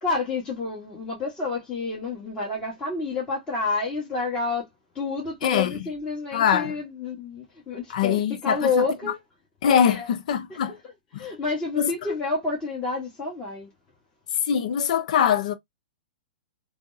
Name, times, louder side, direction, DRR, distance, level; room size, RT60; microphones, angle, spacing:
voice 1, 0.0-4.7 4.9-9.2 9.8-10.1 10.5-13.7, left 3 dB, 20° left, 1.2 m, -29 dB
voice 2, 5.4-5.9 6.3-6.7 7.9-8.8 9.6-10.7 11.1-11.3 11.8-11.9 14.5-15.5, left 8 dB, 65° left, 0.6 m, -23 dB
3.4 x 2.0 x 2.6 m
hypercardioid pair, 125°, 4 cm